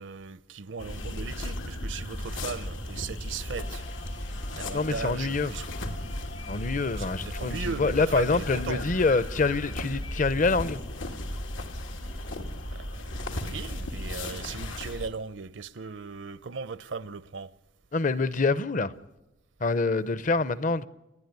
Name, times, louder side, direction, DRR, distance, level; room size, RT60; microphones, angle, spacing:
voice 1, 0.0-3.8 4.5-5.7 7.0-8.8 12.7-17.5, right 5 dB, 75° right, 0.7 m, -38 dB
sound 1, 0.8-15.1, left 1 dB, 90° left, 2.4 m, -35 dB
sound 2, 3.5-9.1, left 4 dB, 70° left, 2.2 m, -48 dB
voice 2, 4.7-5.5 6.5-10.8 17.9-18.9 19.6-20.9, left 3 dB, 40° left, 0.7 m, -26 dB
29.5 x 10.5 x 9.5 m
head